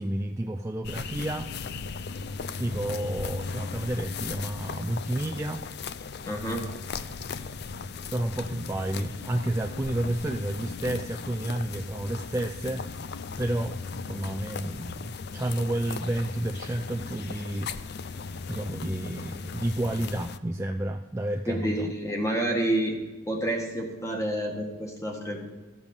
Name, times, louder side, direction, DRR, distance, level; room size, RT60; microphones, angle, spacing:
voice 1, 0.0-1.5 2.6-5.7 8.1-12.9 13.4-18.2 18.5-21.9, right 1 dB, 15° right, 3 dB, 0.3 m, -31 dB
sound 1, 0.8-20.4, left 5 dB, 50° left, 0.4 m, -37 dB
voice 2, 6.3-6.6 21.5-22.9 23.3-25.4, right 1 dB, 15° left, 1 dB, 1.6 m, -29 dB
13.5 x 7.2 x 5.3 m, 1.3 s
head